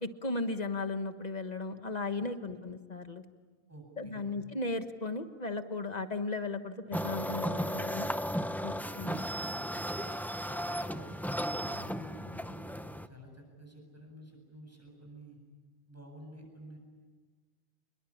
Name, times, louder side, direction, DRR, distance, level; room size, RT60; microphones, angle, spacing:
voice 1, 0.0-3.2 4.0-8.1 8.6-9.2, left 3 dB, 40° left, 8 dB, 1.5 m, -36 dB
voice 2, 3.7-4.3 9.7-9.8 10.4-15.4 15.9-16.8, equal, 15° right, 1 dB, 8.0 m, -51 dB
sound 1, 6.9-13.1, equal, ahead, 0.7 m, -35 dB
28.5 x 22.0 x 8.7 m, 1.5 s
omnidirectional pair, 1.0 m